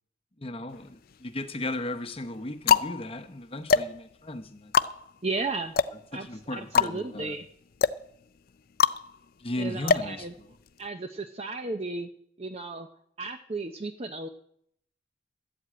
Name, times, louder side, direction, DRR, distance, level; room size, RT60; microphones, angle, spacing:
voice 1, 0.4-4.7 6.1-7.4 9.4-10.5, left 1 dB, 30° left, 8 dB, 0.9 m, -36 dB
sound 1, 0.7-1.4 2.1-10.9, left 6 dB, 50° left, 0.4 m, -27 dB
voice 2, 5.2-5.7 6.1-7.5 9.6-10.3 10.8-12.1 12.4-12.9 13.2-14.3, right 3 dB, 30° right, 7 dB, 0.6 m, -34 dB
12.5 x 8.0 x 8.7 m, 0.70 s
head